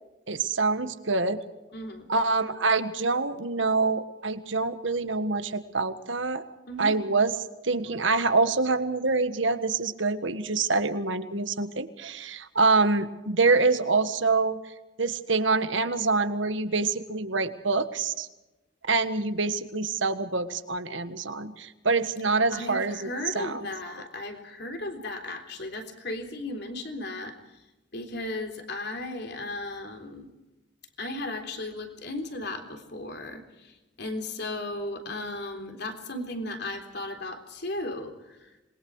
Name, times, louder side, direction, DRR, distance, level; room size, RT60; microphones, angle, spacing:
voice 1, 0.3-1.4 2.1-6.4 6.8-7.3 7.6-14.6 15.0-18.3 18.9-23.1 23.3-23.6, right 3 dB, 70° right, 10 dB, 1.6 m, -26 dB
voice 2, 1.7-2.1 6.7-7.0 22.5-27.6 27.9-30.3 31.0-38.6, left 2 dB, 55° left, 5 dB, 3.6 m, -36 dB
27.0 x 22.0 x 4.8 m, 1.0 s
head